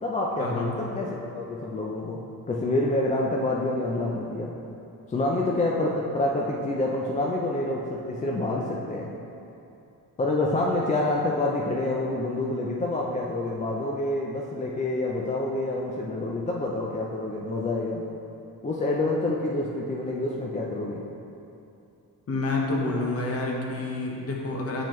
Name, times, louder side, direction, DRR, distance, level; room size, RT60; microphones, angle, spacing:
voice 1, 0.0-2.2 2.5-4.5 5.1-9.1 10.2-18.0 18.6-21.0, left 2 dB, 20° left, -2 dB, 0.4 m, -27 dB
voice 2, 22.3-24.9, left 2 dB, 40° left, -1 dB, 0.9 m, -28 dB
7.2 x 4.5 x 3.1 m, 2.7 s
cardioid pair, 125°, 38 cm